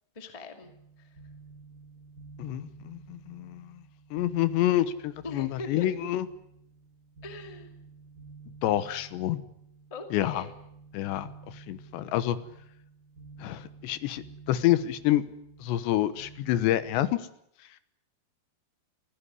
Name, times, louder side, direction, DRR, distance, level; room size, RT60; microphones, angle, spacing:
voice 1, 0.1-0.7 1.0-1.2 5.2-5.9 7.2-7.7 9.9-10.5, left 3 dB, 15° left, 6 dB, 1.2 m, -41 dB
sound 1, 0.6-17.1, right 4 dB, 20° right, 3.6 m, -51 dB
voice 2, 2.4-3.8 4.1-6.3 8.6-9.4 10.1-10.4 10.9-11.3 11.5-12.4 13.4-15.2 15.6-17.2, left 13 dB, 80° left, 14 dB, 3.3 m, -28 dB
24.0 x 15.5 x 9.6 m, 0.76 s
omnidirectional pair, 5.1 m